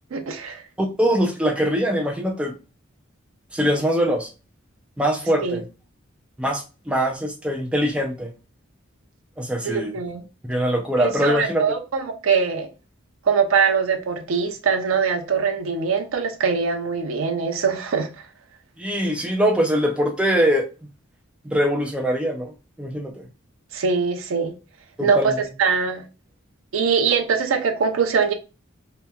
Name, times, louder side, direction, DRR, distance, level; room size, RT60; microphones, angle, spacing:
voice 1, 0.1-0.6 5.4-5.6 9.6-10.2 11.0-12.7 13.3-18.1 23.7-24.5 25.0-25.3 25.6-26.0 26.7-28.3, right 5 dB, 75° right, 0.4 m, -22 dB
voice 2, 0.8-2.5 3.5-4.3 5.0-5.6 6.4-8.3 9.4-9.9 10.5-11.6 18.8-20.6 21.4-22.5 22.8-23.3 25.0-25.4, equal, 5° right, 0.3 m, -22 dB
2.8 x 2.1 x 2.2 m
head